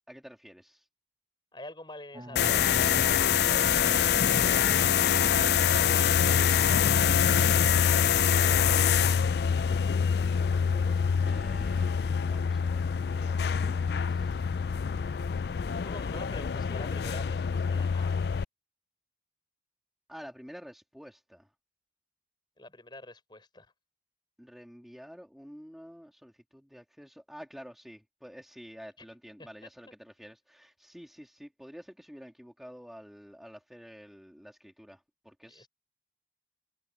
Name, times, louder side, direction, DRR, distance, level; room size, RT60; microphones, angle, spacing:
voice 1, 0.1-0.9 11.2-14.4 20.1-21.5 24.4-35.7, equal, ahead, 2.8 m, -49 dB
sound 1, 2.1-13.1, equal, 20° right, 7.1 m, -46 dB
sound 2, 2.4-18.4, left 7 dB, 60° left, 0.4 m, -25 dB
voice 2, 10.1-11.1 15.8-18.2 22.6-23.7 35.5-35.7, left 1 dB, 25° left, 4.9 m, -48 dB
head